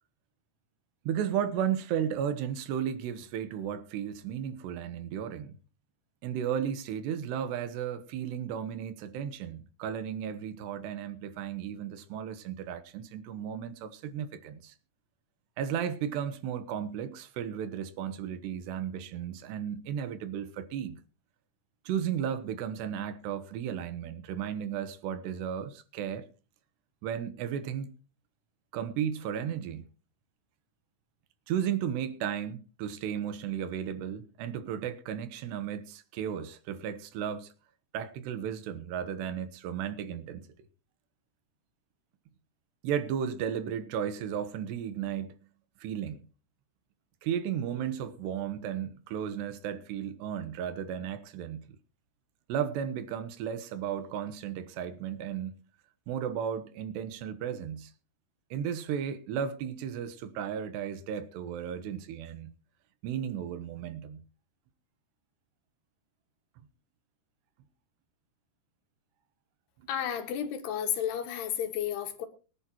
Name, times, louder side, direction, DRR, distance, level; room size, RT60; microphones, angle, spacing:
voice 1, 1.1-5.5 6.2-14.7 15.6-21.0 21.9-26.3 27.0-27.9 28.7-29.8 31.5-37.5 37.9-40.4 42.8-45.4 45.8-46.2 47.2-51.6 52.5-55.6 56.1-57.9 58.5-62.5 63.0-64.2, right 9 dB, 80° right, 3.3 m, -34 dB
voice 2, 69.9-72.3, left 9 dB, 80° left, 3.6 m, -32 dB
23.5 x 11.0 x 3.0 m
omnidirectional pair, 4.8 m